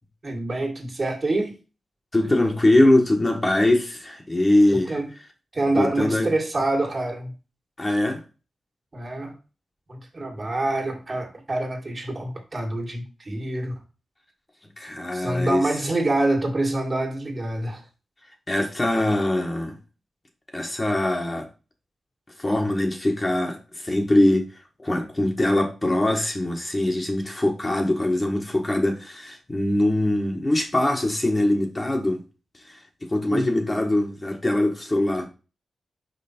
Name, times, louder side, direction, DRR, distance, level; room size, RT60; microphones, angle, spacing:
voice 1, 0.2-1.5 4.7-5.1 5.5-7.3 8.9-9.3 9.9-13.7 15.1-17.8 33.3-33.4, right 2 dB, 35° right, 2.2 m, -26 dB
voice 2, 2.1-5.0 5.7-6.3 7.8-8.2 14.8-15.7 18.5-19.8 20.5-21.5 22.4-32.2 32.7-35.3, left 1 dB, 20° left, 1.4 m, -22 dB
5.6 x 5.1 x 4.4 m
wide cardioid pair, 105°, 0 cm